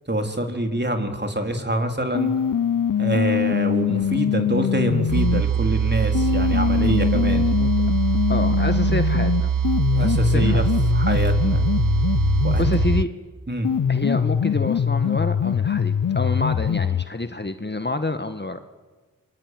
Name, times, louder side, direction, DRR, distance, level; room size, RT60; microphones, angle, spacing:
voice 1, 0.1-2.3 3.0-7.5 9.9-10.6 10.9-11.7 12.4-12.7 13.5-13.7, right 1 dB, 30° right, 4 dB, 4.2 m, -25 dB
sound 1, 2.1-5.4 6.1-13.1 13.6-17.1, left 8 dB, 70° left, 0.8 m, -23 dB
sound 2, 5.1-13.0, right 8 dB, 70° right, 0.9 m, -23 dB
voice 2, 7.3-7.7 8.3-9.5 10.2-10.6 12.6-13.1 13.9-18.6, left 2 dB, 30° left, 8 dB, 1.8 m, -27 dB
26.5 x 23.5 x 9.4 m, 1.4 s
cardioid pair, 40°, 33 cm